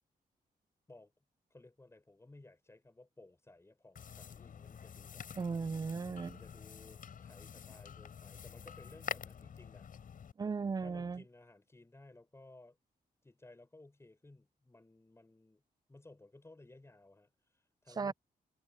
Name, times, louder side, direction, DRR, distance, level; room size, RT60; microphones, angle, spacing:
voice 1, 1.5-5.2 6.3-9.9 10.8-12.8 13.2-15.6 15.9-18.1, left 2 dB, 15° left, 5.9 m, -58 dB
sound 1, 3.9-10.3, left 7 dB, 65° left, 6.6 m, -47 dB
voice 2, 5.4-6.4 10.4-11.2 18.0-18.1, right 5 dB, 25° right, 0.4 m, -36 dB
cardioid pair, 100°, 15 cm